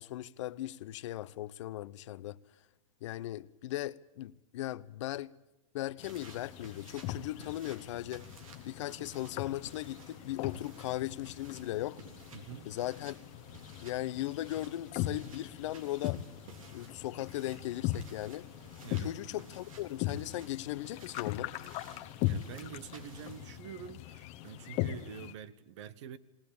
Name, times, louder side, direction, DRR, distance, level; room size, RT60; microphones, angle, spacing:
voice 1, 0.0-2.4 3.0-5.3 5.7-8.3 8.7-12.0 12.7-13.2 13.8-16.2 16.7-18.5 19.0-21.5, left 15 dB, 60° left, 0.7 m, -38 dB
sound 1, 6.0-25.3, left 14 dB, 40° left, 1.2 m, -40 dB
sound 2, 6.0-23.6, right 3 dB, 85° right, 3.4 m, -55 dB
voice 2, 12.3-12.7 18.8-19.1 22.2-26.2, right 9 dB, 60° right, 1.2 m, -46 dB
19.0 x 19.0 x 8.6 m
hypercardioid pair, 120°, 17 cm